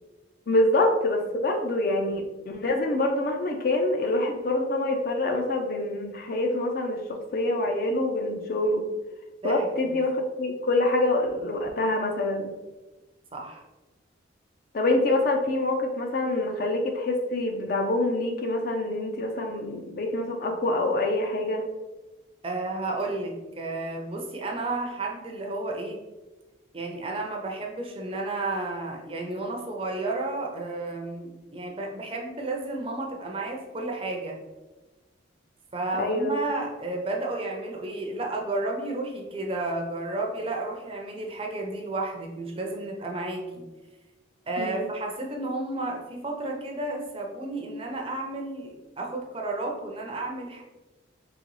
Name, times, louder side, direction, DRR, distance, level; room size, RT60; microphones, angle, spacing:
voice 1, 0.5-8.9 9.4-12.5 14.7-21.6 36.0-36.4 44.6-44.9, left 2 dB, 45° left, 3 dB, 0.4 m, -26 dB
voice 2, 9.4-9.9 13.3-13.6 22.4-26.0 26.7-34.4 35.7-43.6 44.5-50.6, right 2 dB, 30° right, 1 dB, 0.5 m, -32 dB
3.9 x 2.9 x 3.1 m, 1.1 s
head